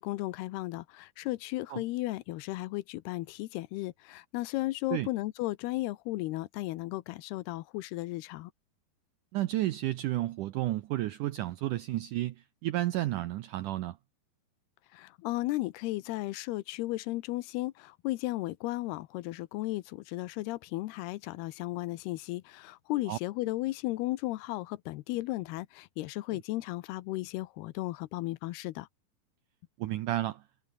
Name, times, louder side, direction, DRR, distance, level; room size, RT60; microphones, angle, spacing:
voice 1, 0.0-8.5 14.9-28.9, left 18 dB, 85° left, 2.8 m, -35 dB
voice 2, 9.3-14.0 23.1-23.2 29.8-30.4, right 15 dB, 85° right, 1.8 m, -32 dB
omnidirectional pair, 4.6 m